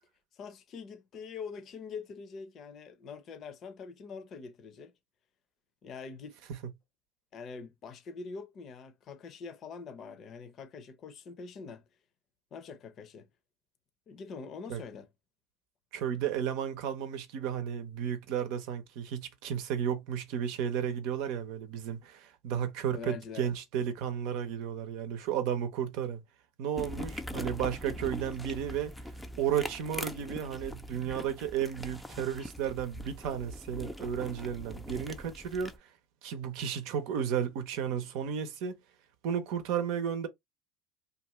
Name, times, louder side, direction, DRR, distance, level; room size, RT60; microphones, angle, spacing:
voice 1, 0.3-4.9 5.8-6.4 7.3-11.8 12.5-13.3 14.1-15.1 22.9-23.5, left 5 dB, 45° left, 0.7 m, -44 dB
voice 2, 15.9-26.2 26.6-28.9 29.4-35.8 36.2-38.8 39.2-40.3, right 8 dB, 65° right, 0.7 m, -33 dB
sound 1, 26.8-35.8, left 1 dB, 5° left, 0.5 m, -42 dB
2.5 x 2.4 x 3.0 m
hypercardioid pair, 90°, 0 cm